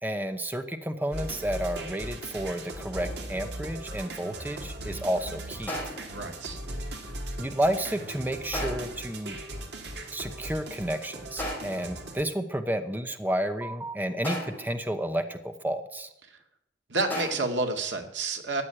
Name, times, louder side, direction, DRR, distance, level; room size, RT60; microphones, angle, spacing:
voice 1, 0.0-5.7 7.4-9.4 10.1-16.1, right 1 dB, 10° right, 8 dB, 0.9 m, -31 dB
sound 1, 1.1-12.2, right 1 dB, 65° right, 2.4 m, -38 dB
sound 2, 2.9-3.4 5.7-6.2 8.5-9.0 11.4-12.0 14.2-14.8 17.1-17.7, equal, 10° left, 4.3 m, -36 dB
voice 2, 6.1-6.6 16.9-18.6, right 3 dB, 85° right, 4 dB, 2.1 m, -29 dB
13.5 x 8.3 x 10.0 m, 0.84 s
head